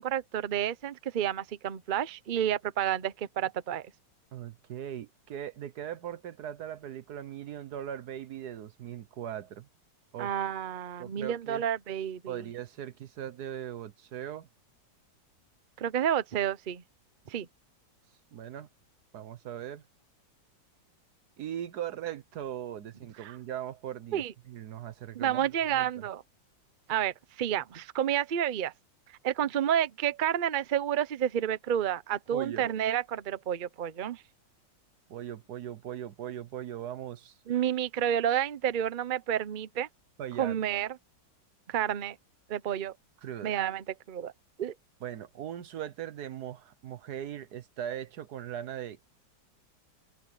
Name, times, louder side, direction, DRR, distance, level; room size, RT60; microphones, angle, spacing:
voice 1, 0.0-3.9 10.2-12.4 15.8-16.8 17.3-17.5 23.2-23.4 24.1-24.3 25.1-26.2 26.9-28.7 29.2-34.2 37.5-39.9 40.4-40.9 41.7-42.2 42.5-42.9 43.4-44.3 44.6-44.7, right 10 dB, 80° right, 0.4 m, -30 dB
voice 2, 4.3-9.7 10.1-10.3 11.0-11.6 12.3-14.5 18.3-18.7 19.1-19.8 21.4-26.0 32.3-32.7 35.1-37.4 40.2-40.5 43.2-43.6 45.0-49.0, right 10 dB, 65° right, 1.4 m, -39 dB
open air
omnidirectional pair, 2.0 m